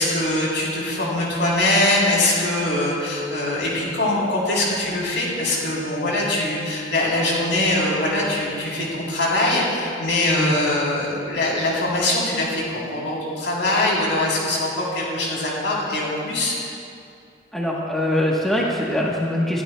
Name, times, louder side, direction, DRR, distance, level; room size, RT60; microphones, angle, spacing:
voice 1, 0.0-16.6, left 1 dB, 65° left, -4 dB, 3.4 m, -22 dB
voice 2, 17.5-19.6, left 1 dB, ahead, -4 dB, 1.0 m, -23 dB
23.0 x 12.0 x 2.2 m, 2.5 s
head